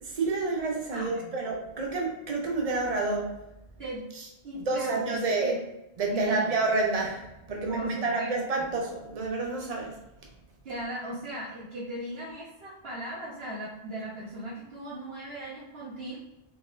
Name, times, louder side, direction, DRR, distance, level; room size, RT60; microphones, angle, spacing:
voice 1, 0.0-3.4 4.7-5.5 6.0-10.0, right 3 dB, 40° right, 1 dB, 0.7 m, -29 dB
voice 2, 0.9-1.3 3.8-4.1 4.4-5.6 6.1-6.5 7.7-8.3 10.6-16.2, right 1 dB, 65° right, -9 dB, 1.2 m, -37 dB
4.0 x 3.4 x 2.5 m, 0.89 s
omnidirectional pair, 1.1 m